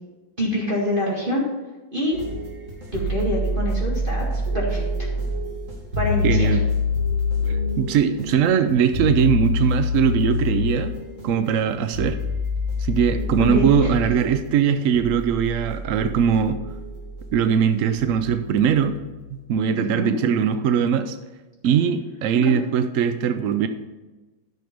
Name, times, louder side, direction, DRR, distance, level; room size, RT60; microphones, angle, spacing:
voice 1, 0.4-1.4 1.9-2.2 2.9-4.3 4.5-4.9 6.0-6.5 13.4-13.9 19.7-20.1 22.4-22.6, left 1 dB, 30° right, -4 dB, 2.1 m, -25 dB
sound 1, 2.1-19.3, left 3 dB, 45° right, 2.4 m, -27 dB
voice 2, 6.2-6.6 7.5-11.0 11.2-12.2 12.8-16.6 17.3-19.0 19.3-21.2 21.6-23.7, right 7 dB, 75° right, 10 dB, 0.7 m, -21 dB
10.5 x 6.6 x 5.1 m, 1.2 s
omnidirectional pair, 2.0 m